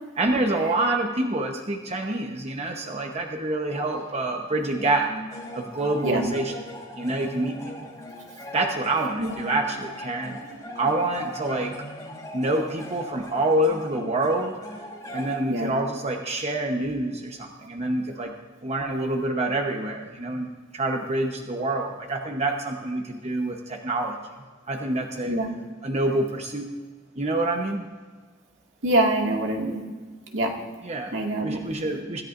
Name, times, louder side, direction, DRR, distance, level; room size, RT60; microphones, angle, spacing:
voice 1, 0.2-5.1 5.5-6.5 7.0-7.7 8.5-10.4 10.7-11.7 12.3-14.6 15.1-18.3 18.6-24.2 24.7-25.4 25.8-26.7 27.2-27.8 30.8-32.2, right 2 dB, 35° right, 2 dB, 1.1 m, -27 dB
sound 1, 3.9-15.4, equal, 20° left, 3.2 m, -39 dB
voice 2, 6.0-6.3 9.2-9.4 15.5-15.7 25.2-25.5 28.8-29.8 30.3-30.5 31.1-31.6, right 1 dB, 70° right, 0 dB, 2.1 m, -24 dB
26.0 x 14.0 x 2.6 m, 1.5 s
head